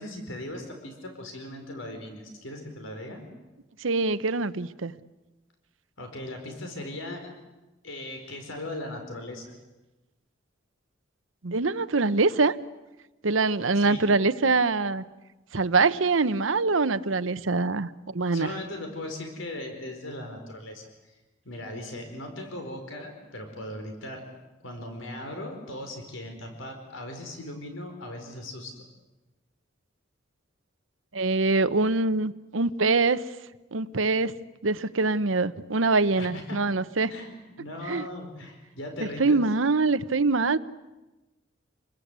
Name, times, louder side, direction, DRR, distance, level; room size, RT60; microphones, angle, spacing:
voice 1, 0.0-3.2 6.0-7.3 7.8-9.5 13.7-14.0 18.3-21.2 21.4-24.2 24.6-28.9 36.2-36.6 37.1-39.4, left 1 dB, 85° left, 4 dB, 4.7 m, -38 dB
voice 2, 3.8-4.9 11.4-12.6 13.2-15.1 15.5-18.5 31.1-33.2 33.7-34.3 34.6-37.1 37.9-38.0 39.2-40.6, right 3 dB, 80° right, 13 dB, 1.0 m, -24 dB
29.0 x 21.5 x 8.2 m, 1.0 s
head